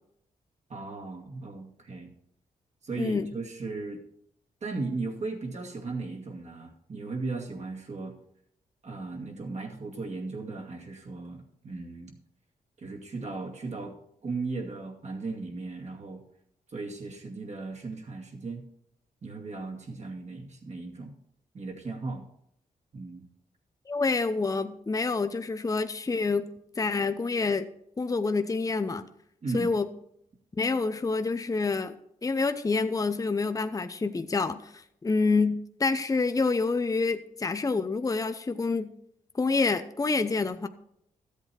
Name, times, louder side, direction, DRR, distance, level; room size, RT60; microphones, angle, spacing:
voice 1, 0.7-2.1 2.8-4.0 4.6-8.1 8.8-12.1 12.8-13.9 14.2-16.2 16.7-18.6 19.2-21.2 21.5-22.3 22.9-23.2 29.4-29.7, right 3 dB, 50° right, 0 dB, 2.4 m, -36 dB
voice 2, 3.0-3.3 23.9-26.5 26.8-27.7 28.0-29.1 29.5-29.9 30.6-31.9 32.2-38.9 39.3-40.7, left 4 dB, 25° left, 9 dB, 0.7 m, -27 dB
13.0 x 8.2 x 4.4 m, 0.73 s
cardioid pair, 65°, 15 cm